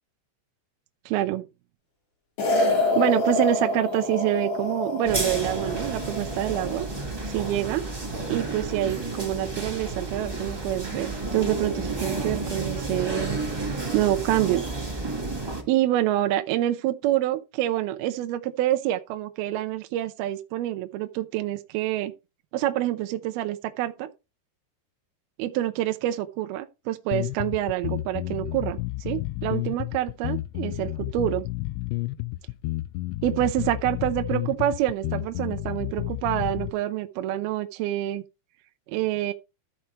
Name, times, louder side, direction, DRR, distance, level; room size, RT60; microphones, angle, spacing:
voice 1, 1.1-1.4 2.7-6.9 7.3-7.9 8.3-13.4 13.9-14.6 15.7-22.1 22.5-24.1 25.4-31.5 33.2-38.2 38.9-39.3, right 13 dB, 75° right, 2.4 m, -27 dB
sound 1, 2.4-6.8, left 2 dB, 70° left, 6.6 m, -26 dB
sound 2, 5.0-15.6, right 2 dB, 15° right, 1.0 m, -31 dB
sound 3, 27.1-36.7, left 19 dB, 85° left, 2.9 m, -31 dB
13.5 x 4.7 x 4.6 m
omnidirectional pair, 5.1 m